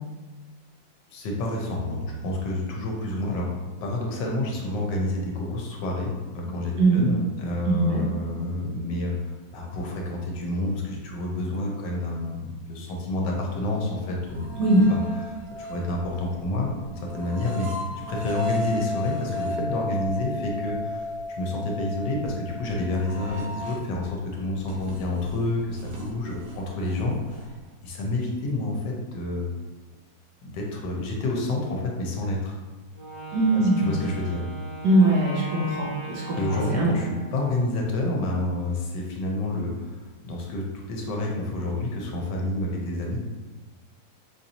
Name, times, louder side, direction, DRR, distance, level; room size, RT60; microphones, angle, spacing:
voice 1, 1.1-14.5 14.9-17.7 18.1-21.1 21.3-27.2 27.8-29.5 30.4-32.5 33.5-34.4 36.3-43.2, left 2 dB, 75° left, -1 dB, 1.2 m, -29 dB
voice 2, 7.7-8.0 14.6-14.8 33.3-33.9 34.8-36.9, right 2 dB, 70° right, -4 dB, 1.4 m, -21 dB
sound 1, 14.2-24.1 24.4-27.7, left 2 dB, 85° right, 1.5 m, -35 dB
Wind instrument woodwind instrument, 32.9-37.8, right 1 dB, 40° right, 0.4 m, -38 dB
4.3 x 2.6 x 2.7 m, 1.2 s
omnidirectional pair, 2.0 m